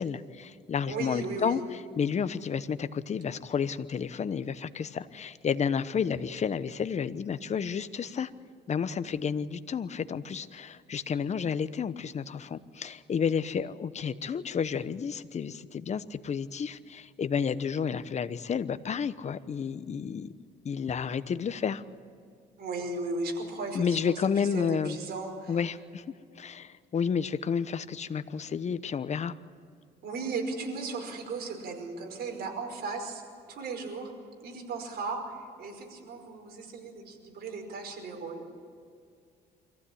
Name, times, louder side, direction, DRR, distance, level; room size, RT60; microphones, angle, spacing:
voice 1, 0.0-8.3 8.7-20.3 20.6-21.8 23.7-25.0 25.5-26.0 26.4-29.3, left 6 dB, 40° left, 13 dB, 1.0 m, -31 dB
voice 2, 0.9-1.6 22.6-24.1 24.5-25.6 30.0-33.2 33.5-34.1 34.4-38.5, right 3 dB, 65° right, 3 dB, 5.1 m, -36 dB
24.5 x 15.5 x 8.7 m, 2.4 s
cardioid pair, 95°, 18 cm